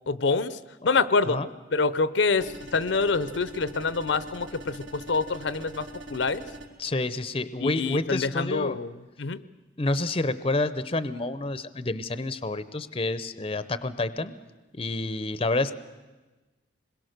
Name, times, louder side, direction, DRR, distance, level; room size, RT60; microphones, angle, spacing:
voice 1, 0.1-0.6 0.8-1.4 1.7-6.4 7.6-9.4, left 4 dB, 70° left, 15 dB, 0.6 m, -26 dB
sound 1, 2.4-6.7, right 1 dB, 80° right, 3.8 m, -43 dB
voice 2, 6.8-8.8 9.8-14.3 14.7-15.7, left 2 dB, 30° left, 13 dB, 0.6 m, -29 dB
26.5 x 21.5 x 6.6 m, 1.2 s
head